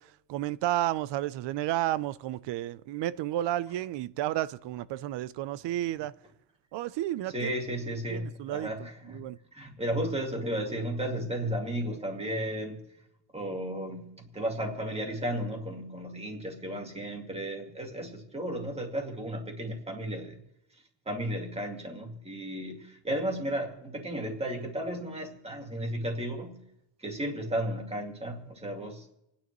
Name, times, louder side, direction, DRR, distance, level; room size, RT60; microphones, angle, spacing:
voice 1, 0.0-6.1 6.7-7.5 8.1-9.4, right 14 dB, 75° right, 0.6 m, -32 dB
voice 2, 7.3-9.2 9.5-12.8 13.3-20.4 21.1-26.6 27.0-29.0, right 1 dB, 15° right, 2.2 m, -34 dB
28.0 x 10.0 x 3.0 m
cardioid pair, 140°, 42 cm